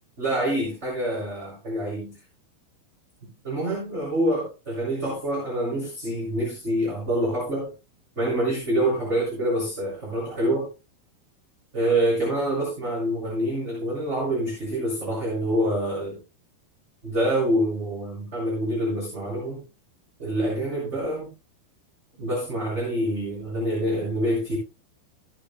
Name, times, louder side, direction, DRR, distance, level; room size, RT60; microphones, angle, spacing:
voice 1, 0.2-2.1 3.4-7.7 8.2-10.7 11.7-16.2 17.0-19.6 20.2-21.3 22.2-24.6, right 1 dB, 15° right, 6.3 m, -26 dB
18.5 x 9.3 x 2.3 m
omnidirectional pair, 5.3 m